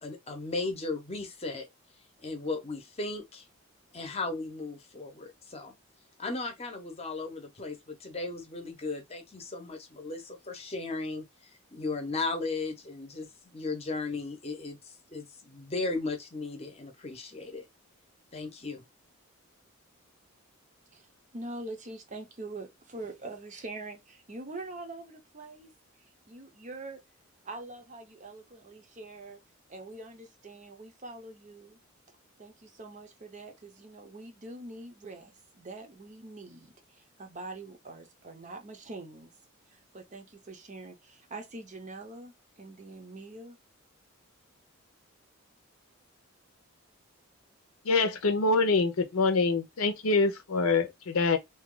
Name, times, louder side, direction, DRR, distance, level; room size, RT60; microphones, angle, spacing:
voice 1, 0.0-1.7 2.2-3.4 3.9-5.7 6.2-14.8 15.1-17.7 18.3-18.8, left 3 dB, 30° left, 0.8 m, -36 dB
voice 2, 20.9-25.7 26.0-27.0 27.4-29.4 29.7-31.8 32.4-39.3 39.7-43.6, right 2 dB, 35° right, 0.6 m, -44 dB
voice 3, 47.8-51.4, left 3 dB, 85° left, 0.6 m, -25 dB
2.7 x 2.3 x 3.7 m
head